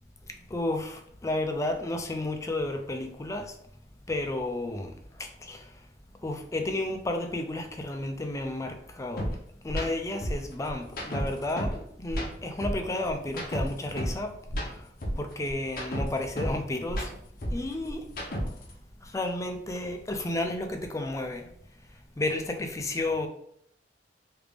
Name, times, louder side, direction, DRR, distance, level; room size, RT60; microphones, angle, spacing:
voice 1, 0.5-3.6 4.1-4.9 5.2-5.7 6.2-9.3 9.6-14.3 14.6-14.9 15.2-17.1 17.5-18.1 19.0-21.5 22.2-23.3, left 2 dB, 20° left, 0.4 m, -32 dB
sound 1, 9.2-9.3 9.7-9.9 10.2-11.8 12.1-14.2 14.5-16.6 16.9-18.7, equal, 55° left, 0.8 m, -32 dB
3.3 x 2.5 x 3.3 m
head